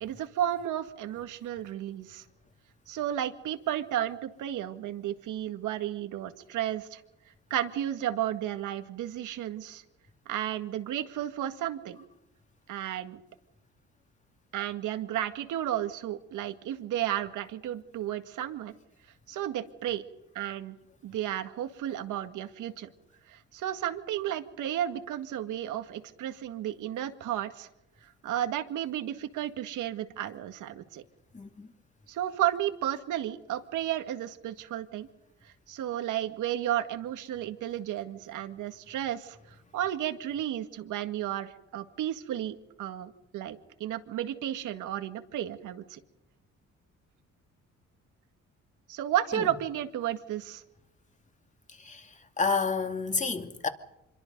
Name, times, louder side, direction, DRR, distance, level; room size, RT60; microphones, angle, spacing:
voice 1, 0.0-2.2 2.9-7.0 7.5-9.8 10.3-12.0 12.7-13.2 14.5-18.7 19.3-20.0 20.3-20.8 21.0-22.9 23.3-27.7 28.2-31.0 32.1-35.1 35.7-39.4 39.7-46.0 48.9-50.6, right 11 dB, 85° right, 2.0 m, -33 dB
voice 2, 31.3-31.7 49.3-49.5 51.8-52.1 52.4-53.7, left 4 dB, 25° left, 2.6 m, -29 dB
26.0 x 23.0 x 5.4 m
cardioid pair, 90°, 30 cm